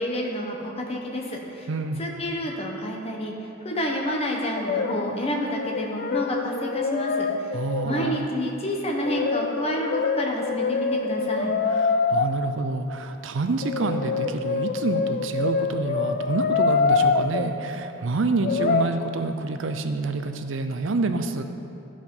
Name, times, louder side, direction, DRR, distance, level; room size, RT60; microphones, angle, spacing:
voice 1, 0.0-1.7 2.0-3.3 3.6-7.3 7.8-11.5, equal, 30° left, 0 dB, 1.1 m, -29 dB
voice 2, 1.7-2.0 7.5-8.2 11.8-21.4, right 3 dB, 70° right, 7 dB, 0.5 m, -27 dB
Brass instrument, 4.6-5.3 5.5-8.0 9.0-12.3 13.6-17.5 18.4-18.9, left 4 dB, 45° left, 0.4 m, -25 dB
12.5 x 5.0 x 5.4 m, 2.8 s
head